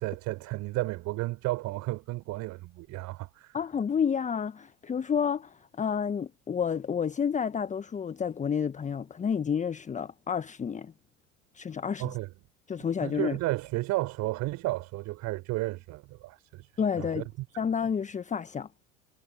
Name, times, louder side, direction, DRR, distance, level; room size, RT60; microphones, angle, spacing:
voice 1, 0.0-3.6 12.0-12.3 13.0-16.7 17.0-17.2, right 19 dB, 45° right, 4.3 m, -33 dB
voice 2, 3.5-10.9 11.5-12.2 12.7-13.4 16.8-17.3 17.6-18.8, left 7 dB, 20° left, 1.4 m, -30 dB
figure-of-eight pair, 75°, 39 cm